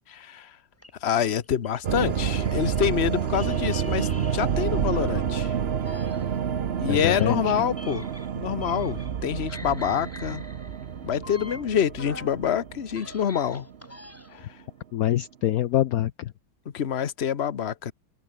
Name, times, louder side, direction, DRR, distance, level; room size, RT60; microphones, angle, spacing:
voice 1, 0.1-0.6 1.0-5.5 6.8-8.1 8.3-10.4 11.0-13.7 14.3-14.5 16.7-17.9, left 9 dB, 40° left, 1.0 m, -26 dB
sound 1, 0.8-2.9 3.3-5.5 5.8-9.2 9.5-12.4 12.8-14.5, equal, 5° left, 6.8 m, -46 dB
sound 2, 1.8-13.9, right 8 dB, 50° right, 0.7 m, -29 dB
voice 2, 6.9-7.6 14.9-16.3, left 13 dB, 70° left, 0.9 m, -25 dB
omnidirectional pair, 2.2 m